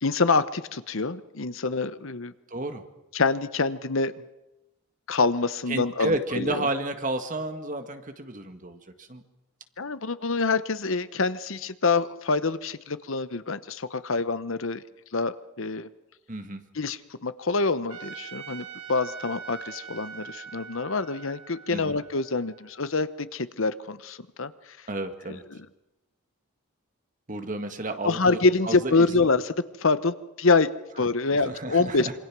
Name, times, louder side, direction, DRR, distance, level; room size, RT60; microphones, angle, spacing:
voice 1, 0.0-2.3 3.1-4.1 5.1-6.7 9.8-14.8 15.1-15.9 16.7-24.5 25.3-25.7 28.0-30.7 31.0-32.1, left 3 dB, 65° left, 14 dB, 0.9 m, -26 dB
voice 2, 2.5-2.8 5.7-9.2 16.3-16.6 21.7-21.9 24.9-25.4 27.3-28.4 28.6-29.2 31.3-32.1, right 2 dB, 35° right, 7 dB, 1.8 m, -31 dB
Trumpet, 17.9-23.1, right 7 dB, 90° right, 2.6 m, -43 dB
27.0 x 24.5 x 6.1 m, 0.98 s
head